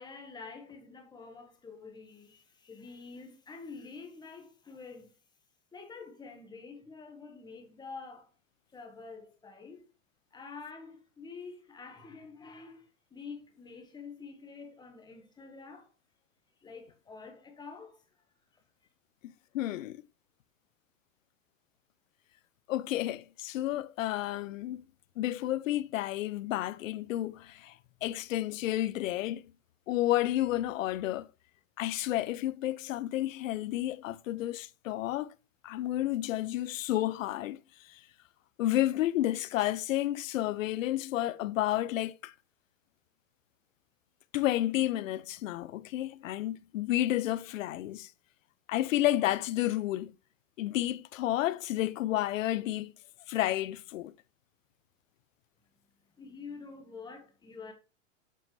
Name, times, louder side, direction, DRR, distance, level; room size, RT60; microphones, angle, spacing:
voice 1, 0.0-5.1 5.7-8.3 8.7-9.8 10.3-15.9 16.6-18.0 56.2-57.7, left 4 dB, 10° left, 1.3 m, -47 dB
voice 2, 19.5-20.0 22.7-24.8 25.2-27.7 28.0-29.4 29.9-31.3 31.8-35.3 35.6-37.6 37.9-38.0 38.6-42.3 44.3-48.1 48.7-50.1 50.6-52.9 53.3-54.1, left 14 dB, 80° left, 0.6 m, -31 dB
7.6 x 5.4 x 3.2 m
supercardioid pair, 140°, 38 cm